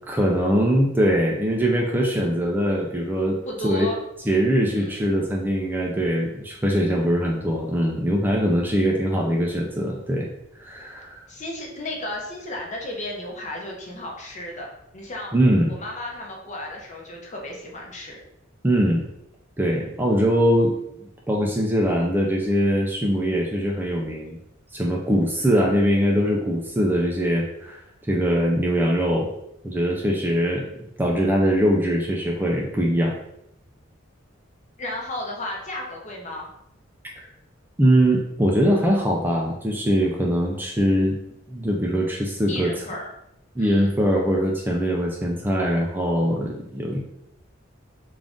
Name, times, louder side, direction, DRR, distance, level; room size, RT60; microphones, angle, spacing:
voice 1, 0.1-3.4 3.6-3.9 4.3-10.3 10.6-11.2 15.3-15.7 18.6-19.0 19.6-24.4 24.7-29.3 29.6-30.6 31.0-33.1 37.8-41.2 41.5-42.7 43.6-47.0, equal, 10° right, -1 dB, 0.4 m, -22 dB
voice 2, 3.5-4.0 4.7-5.1 11.3-15.3 15.7-18.2 34.8-36.5 42.5-43.1 43.6-43.9, left 1 dB, 35° left, -1 dB, 0.8 m, -34 dB
3.6 x 2.5 x 3.5 m, 0.78 s
head